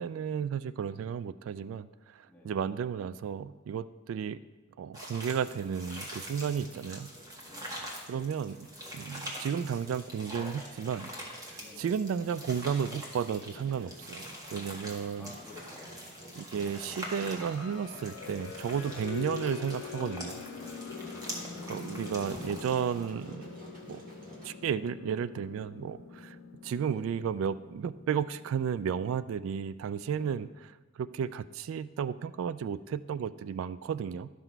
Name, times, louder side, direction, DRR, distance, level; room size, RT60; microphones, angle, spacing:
voice 1, 0.0-4.4 4.8-7.1 8.1-8.7 8.9-11.1 11.4-15.3 16.4-20.4 21.7-23.5 23.9-24.0 24.4-26.4 26.6-30.5 31.0-34.3, right 7 dB, 85° right, 17 dB, 0.3 m, -33 dB
sound 1, 4.9-23.1, equal, 20° right, 1.5 m, -44 dB
Engine, 5.2-24.5, right 1 dB, 45° right, 1.6 m, -53 dB
voice 2, 7.5-7.9 11.5-12.0 15.2-15.9 18.6-19.0 20.8-21.3 30.1-30.5, left 3 dB, 10° left, -4 dB, 1.7 m, -53 dB
sound 2, 17.2-29.7, left 5 dB, 75° left, 1.2 m, -44 dB
12.0 x 5.9 x 4.5 m, 1.2 s
head